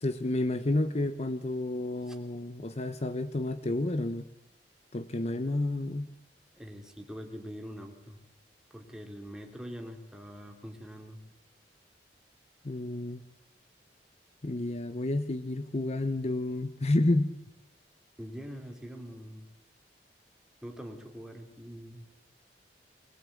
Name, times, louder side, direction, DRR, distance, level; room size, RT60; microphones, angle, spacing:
voice 1, 0.0-4.3 4.9-6.1 12.6-13.2 14.4-17.3, left 2 dB, 40° left, 11 dB, 0.8 m, -30 dB
voice 2, 6.5-8.2 8.7-11.2 18.2-19.5 20.6-22.0, equal, 5° right, 3 dB, 2.8 m, -44 dB
21.0 x 20.5 x 8.5 m, 0.86 s
head